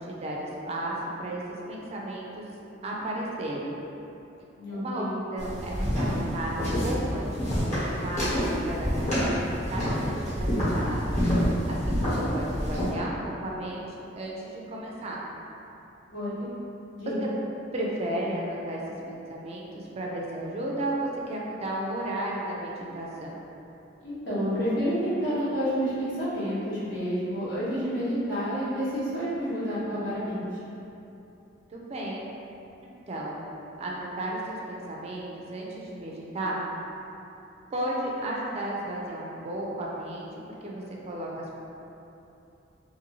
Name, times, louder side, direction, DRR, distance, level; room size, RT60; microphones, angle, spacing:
voice 1, 0.1-1.4 1.7-2.5 2.8-3.8 4.7-5.0 5.3-9.4 9.7-13.8 14.2-15.2 17.7-18.8 19.1-23.3 31.7-32.2 33.1-33.4 33.8-36.6 37.7-40.3 40.6-41.6, right 1 dB, 35° right, -3 dB, 0.4 m, -34 dB
voice 2, 4.6-5.1 16.1-16.5 16.9-17.1 24.0-30.6, equal, 65° left, -11 dB, 1.1 m, -29 dB
sound 1, 5.4-12.9, equal, 40° left, 1.1 m, -27 dB
2.6 x 2.6 x 2.9 m, 2.9 s
head